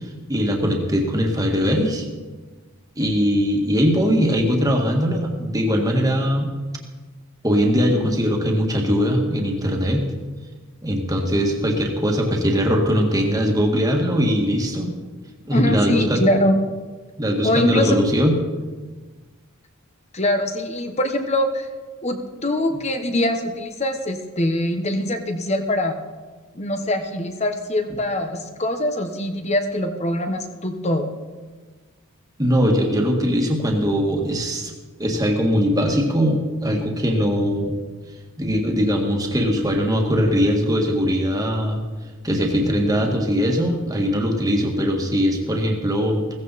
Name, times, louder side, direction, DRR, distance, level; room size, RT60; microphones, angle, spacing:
voice 1, 0.3-2.1 3.0-6.5 7.4-10.0 10.8-14.9 15.5-16.3 17.2-18.3 32.4-34.7 35.0-37.7 38.4-41.8 42.2-46.3, equal, 15° right, 1 dB, 1.8 m, -20 dB
voice 2, 15.5-16.5 17.4-18.0 20.1-21.7 22.0-26.0 26.5-31.1, left 1 dB, 30° left, 6 dB, 1.2 m, -23 dB
16.0 x 15.0 x 4.2 m, 1.3 s
head